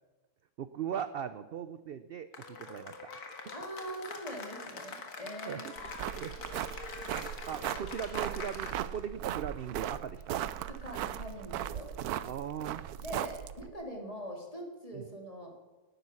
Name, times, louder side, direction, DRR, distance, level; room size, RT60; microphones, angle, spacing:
voice 1, 0.6-3.0 3.4-3.5 5.5-5.7 6.1-6.4 7.5-10.4 12.2-12.8 14.9-15.1, right 8 dB, 65° right, 12 dB, 0.6 m, -39 dB
Cheering / Applause, 2.3-9.1, left 4 dB, 85° left, 2.2 m, -44 dB
voice 2, 3.5-5.7 10.7-11.9 13.0-15.5, equal, 25° left, 1 dB, 2.9 m, -43 dB
sound 1, 5.8-13.7, right 11 dB, 80° right, 1.1 m, -38 dB
11.0 x 10.0 x 9.9 m, 1.2 s
omnidirectional pair, 1.6 m